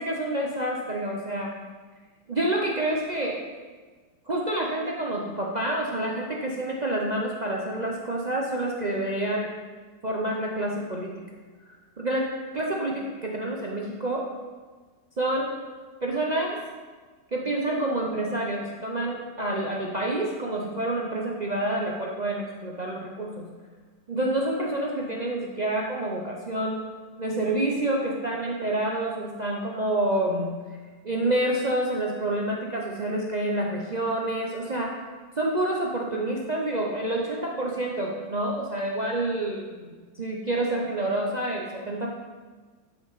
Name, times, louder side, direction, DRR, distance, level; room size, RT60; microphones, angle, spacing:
voice 1, 0.0-1.5 2.3-3.4 4.3-9.5 10.0-11.1 12.0-12.3 12.5-14.3 15.2-15.5 16.0-16.6 17.3-23.5 24.1-26.8 27.2-30.5 31.0-34.9 35.4-42.1, right 1 dB, 55° right, -2 dB, 0.4 m, -28 dB
12.0 x 5.7 x 4.0 m, 1.4 s
omnidirectional pair, 2.0 m